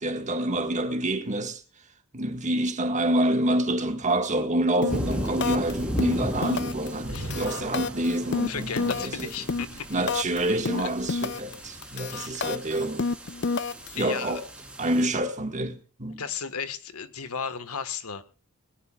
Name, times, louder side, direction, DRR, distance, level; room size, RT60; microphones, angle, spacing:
voice 1, 0.0-1.6 2.1-9.3 9.9-13.1 13.9-14.4 14.8-16.2, right 1 dB, 35° right, 1.8 m, -27 dB
sound 1, 4.8-5.1 5.4-5.7 6.0-6.9 7.1-10.4 10.6-11.5 11.8-14.0, left 4 dB, 55° left, 0.7 m, -29 dB
sound 2, 4.9-15.0, equal, 5° right, 3.9 m, -37 dB
sound 3, 5.7-11.0, right 1 dB, 70° right, 3.1 m, -41 dB
voice 2, 8.5-9.7 10.8-10.9 12.1-12.5 14.0-14.4 16.2-18.2, left 6 dB, 85° left, 1.6 m, -34 dB
21.5 x 17.5 x 2.5 m
head